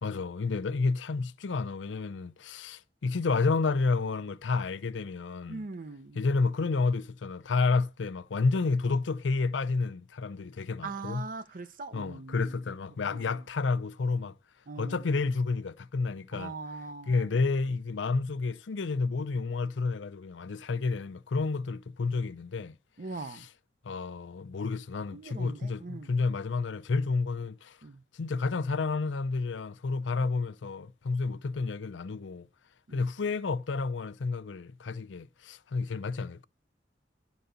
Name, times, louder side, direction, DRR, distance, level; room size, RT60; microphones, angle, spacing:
voice 1, 0.0-5.6 6.2-11.3 11.9-14.3 14.8-16.5 17.1-22.7 23.3-23.5 23.8-27.8 28.1-32.5 32.9-36.4, left 4 dB, 90° left, 0.6 m, -30 dB
voice 2, 5.5-6.2 10.8-12.6 13.1-13.4 14.7-15.1 16.3-17.3 23.0-23.5 25.1-26.2 27.8-28.0 32.9-33.1, right 3 dB, 50° right, 0.7 m, -41 dB
11.5 x 4.1 x 6.7 m
head